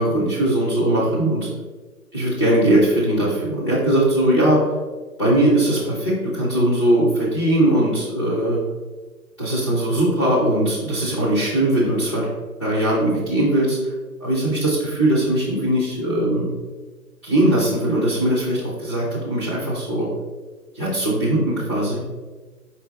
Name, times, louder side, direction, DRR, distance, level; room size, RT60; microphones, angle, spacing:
voice 1, 0.0-1.5 2.1-4.6 5.2-8.6 9.4-12.3 12.6-13.8 14.2-16.5 17.2-20.1 20.7-22.0, right 1 dB, 20° left, -7 dB, 0.4 m, -20 dB
4.5 x 3.2 x 3.3 m, 1.3 s
hypercardioid pair, 155°, 45 cm